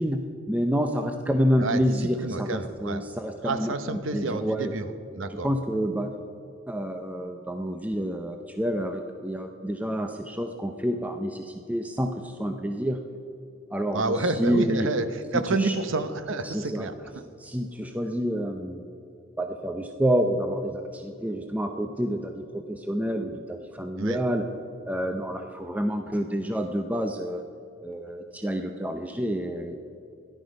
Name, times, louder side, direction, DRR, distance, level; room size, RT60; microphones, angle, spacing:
voice 1, 0.0-4.7 5.3-6.1 6.7-13.0 13.7-14.9 15.3-15.7 16.4-16.9 17.4-18.8 19.4-24.5 24.9-27.4 27.8-29.7, equal, 5° right, 5 dB, 0.5 m, -28 dB
voice 2, 2.2-3.0 3.4-4.9 5.2-5.5 13.9-16.9 24.0-24.2, right 3 dB, 65° right, 10 dB, 0.8 m, -29 dB
13.5 x 11.0 x 5.2 m, 2.7 s
head